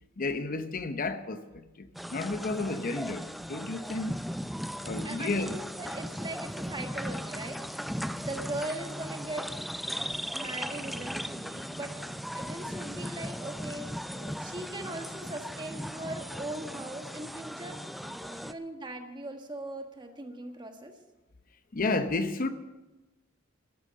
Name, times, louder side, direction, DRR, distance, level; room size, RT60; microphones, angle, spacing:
voice 1, 0.2-4.2 4.8-5.6 14.1-14.4 18.2-18.4 21.7-22.5, left 3 dB, 45° left, 0.7 m, -32 dB
sound 1, 1.9-18.5, equal, ahead, 0.4 m, -37 dB
voice 2, 5.0-7.6 8.0-9.5 10.3-12.0 12.3-13.9 14.4-17.8 18.3-20.9, right 1 dB, 20° right, 1.5 m, -39 dB
13.0 x 12.0 x 6.5 m
head